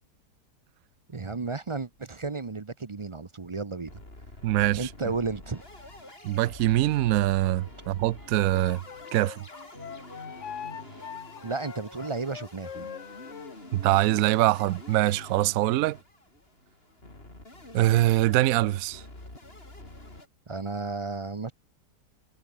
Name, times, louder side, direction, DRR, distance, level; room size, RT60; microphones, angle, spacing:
voice 1, 1.1-3.9 4.8-5.6 11.4-12.9 20.5-21.5, right 4 dB, 40° right, 0.4 m, -33 dB
sound 1, 1.9-2.7 3.0-3.1 3.4-3.5 3.9-20.3, left 2 dB, 30° left, 5.4 m, -47 dB
voice 2, 4.4-4.9 6.2-8.8 9.1-9.4 13.7-16.0 17.7-19.0, right 15 dB, 70° right, 0.9 m, -23 dB
sound 2, 5.4-12.6, right 1 dB, 10° right, 5.1 m, -53 dB
Wind instrument woodwind instrument, 8.5-13.6, left 8 dB, 50° left, 1.2 m, -41 dB
omnidirectional pair, 1.9 m